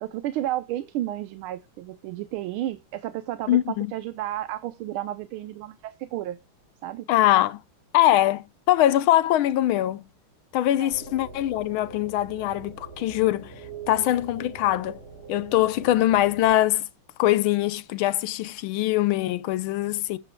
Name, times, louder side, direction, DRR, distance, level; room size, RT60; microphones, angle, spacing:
voice 1, 0.0-6.4 6.8-7.1 10.8-10.9, right 13 dB, 85° right, 1.6 m, -32 dB
voice 2, 3.5-3.9 7.1-7.6 7.9-10.1 10.5-13.5 13.9-15.0 15.3-16.9 17.2-20.2, left 14 dB, 80° left, 1.5 m, -22 dB
sound 1, 10.9-16.5, right 5 dB, 30° right, 4.1 m, -43 dB
13.5 x 9.8 x 2.2 m
omnidirectional pair, 2.2 m